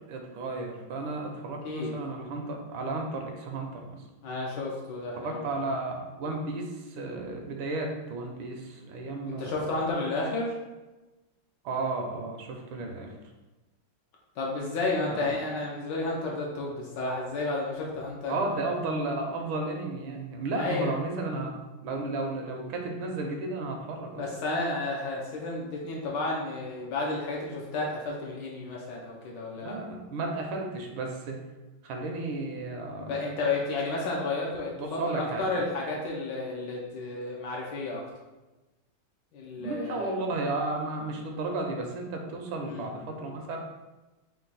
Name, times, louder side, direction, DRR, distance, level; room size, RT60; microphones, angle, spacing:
voice 1, 0.1-4.0 5.2-9.6 11.6-13.1 15.1-15.4 18.3-24.2 29.6-31.4 31.8-33.3 34.8-35.4 39.6-43.6, right 2 dB, 80° right, 2 dB, 1.4 m, -33 dB
voice 2, 4.2-5.6 9.3-10.5 14.4-18.3 20.6-20.9 24.2-29.8 33.0-38.0 39.3-40.1 42.6-42.9, left 2 dB, 70° left, -2 dB, 1.1 m, -32 dB
4.5 x 2.2 x 3.9 m, 1.1 s
omnidirectional pair, 2.3 m